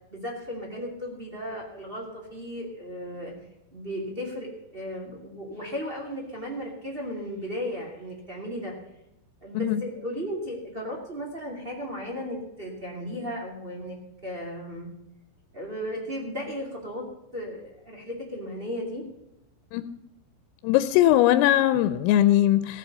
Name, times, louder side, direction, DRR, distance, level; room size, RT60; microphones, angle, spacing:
voice 1, 0.1-3.3 3.7-8.7 9.4-14.0 14.2-14.9 15.5-17.0 17.3-19.0, equal, 50° right, -2 dB, 0.6 m, -35 dB
voice 2, 20.6-22.8, left 13 dB, 85° left, 12 dB, 3.3 m, -20 dB
15.0 x 7.6 x 6.7 m, 0.88 s
omnidirectional pair, 5.8 m